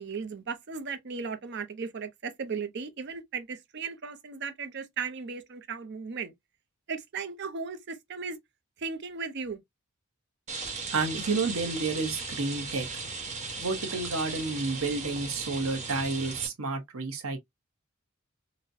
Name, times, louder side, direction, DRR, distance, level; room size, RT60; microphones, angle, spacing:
voice 1, 0.0-6.3 6.9-8.4 8.8-9.6, right 5 dB, 55° right, 0.6 m, -36 dB
Rain, 10.5-16.5, right 4 dB, 35° right, 1.0 m, -37 dB
voice 2, 10.9-12.9 13.6-17.4, right 3 dB, 80° right, 0.9 m, -30 dB
3.9 x 2.1 x 2.6 m
head